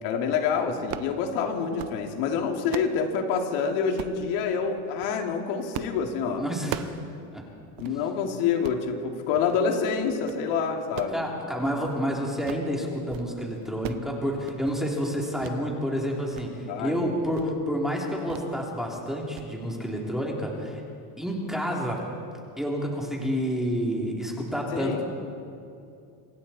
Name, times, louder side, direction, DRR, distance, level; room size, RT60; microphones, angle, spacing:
voice 1, 0.0-6.4 7.8-11.2 16.7-17.0 24.7-25.0, left 6 dB, 75° left, 2 dB, 2.8 m, -27 dB
sound 1, 0.8-1.2 1.6-2.0 2.4-3.0 4.0-4.2 4.9-5.2 5.7-6.0 6.3-7.0 7.4-7.5 7.8-8.0 8.5-8.8 9.3-9.6 10.0-10.4 10.8-12.0 12.3-12.7 13.0-13.3 13.6-14.1 14.4-14.8 15.4-15.6 16.0-16.5 16.8-16.9 17.3-17.6 18.3-18.5 18.8-19.0 19.4-19.5, right 12 dB, 50° right, 0.9 m, -38 dB
voice 2, 6.4-6.9 7.3-7.4 7.8-8.0 11.1-20.8 21.2-22.1 22.6-25.0, equal, ahead, -2 dB, 3.1 m, -29 dB
27.5 x 23.5 x 4.3 m, 2.5 s
cardioid pair, 150°, 45 cm